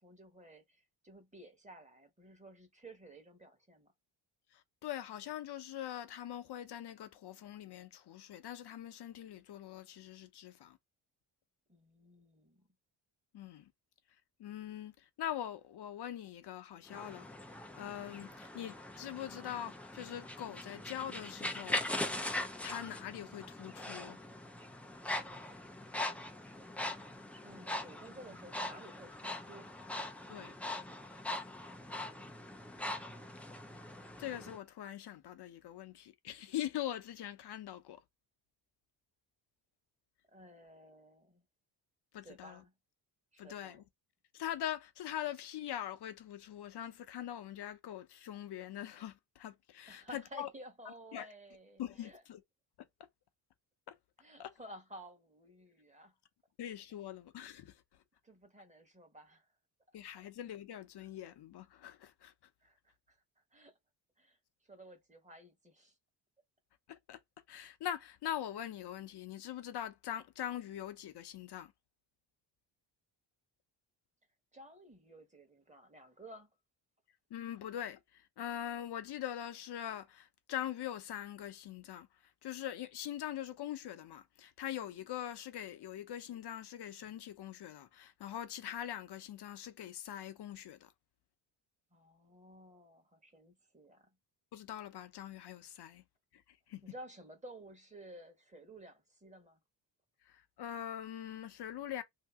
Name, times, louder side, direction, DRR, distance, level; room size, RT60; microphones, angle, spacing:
voice 1, 0.0-3.9 11.7-12.7 27.4-29.8 40.3-41.4 42.2-42.7 43.3-43.8 49.9-52.2 54.2-56.1 58.2-59.5 60.2-60.3 62.6-63.8 64.2-64.4 64.6-66.0 74.5-76.5 91.9-94.1 96.8-99.6, right 1 dB, 15° right, 1.2 m, -54 dB
voice 2, 4.5-10.8 13.3-13.7 14.4-21.8 22.6-24.2 30.3-30.5 34.2-38.0 42.1-42.6 43.4-43.8 44.3-50.5 51.1-51.3 51.8-52.4 53.9-54.0 54.4-54.5 56.6-57.8 59.9-62.3 66.9-67.2 67.5-71.7 77.3-82.1 82.4-90.9 94.5-96.0 96.3-96.8 100.2-102.0, left 11 dB, 55° left, 0.8 m, -43 dB
sound 1, 16.9-34.6, left 1 dB, 5° left, 0.4 m, -41 dB
2.9 x 2.6 x 3.6 m
cardioid pair, 90°, 47 cm